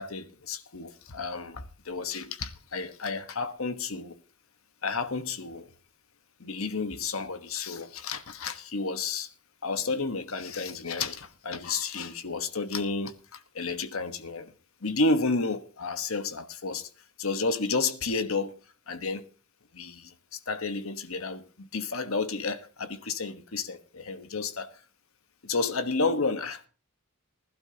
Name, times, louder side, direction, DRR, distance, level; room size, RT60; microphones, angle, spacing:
voice 1, 0.0-4.1 4.8-5.7 6.4-9.3 9.6-14.5 14.8-16.9 17.2-18.5 18.9-19.3 19.7-24.7 25.4-26.7, left 3 dB, 70° left, 1.3 m, -31 dB
20.0 x 12.0 x 2.9 m
head